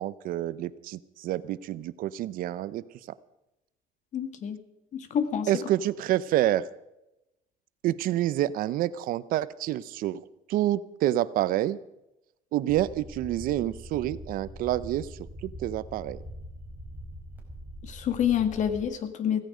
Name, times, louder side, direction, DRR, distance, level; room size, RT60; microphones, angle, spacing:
voice 1, 0.0-2.8 5.5-6.7 7.8-10.2 10.5-11.8 12.5-15.1 15.4-16.2, right 13 dB, 75° right, 16 dB, 0.7 m, -28 dB
voice 2, 4.1-4.6 4.9-5.5 17.8-19.4, left 9 dB, 55° left, 9 dB, 2.0 m, -27 dB
sound 1, 12.7-18.8, equal, 10° right, 4.8 m, -43 dB
16.5 x 16.0 x 5.1 m, 0.91 s
cardioid pair, 120°, 15 cm